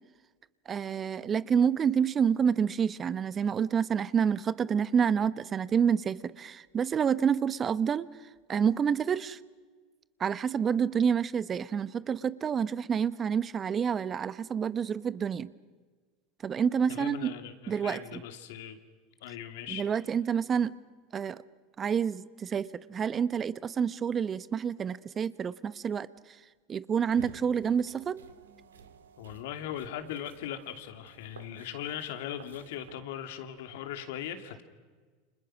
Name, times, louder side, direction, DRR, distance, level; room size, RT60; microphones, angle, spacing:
voice 1, 0.7-8.1 8.5-9.4 10.2-15.5 16.4-17.3 17.7-18.2 19.7-20.7 21.1-21.4 21.8-26.1 26.7-28.2, right 7 dB, 30° right, 17 dB, 0.9 m, -28 dB
voice 2, 16.9-18.8 19.2-19.9 29.2-34.6, left 10 dB, 70° left, 8 dB, 2.7 m, -39 dB
sound 1, 27.0-33.0, right 7 dB, 85° right, 2.0 m, -53 dB
29.5 x 27.0 x 6.2 m, 1.4 s
hypercardioid pair, 85°, 0 cm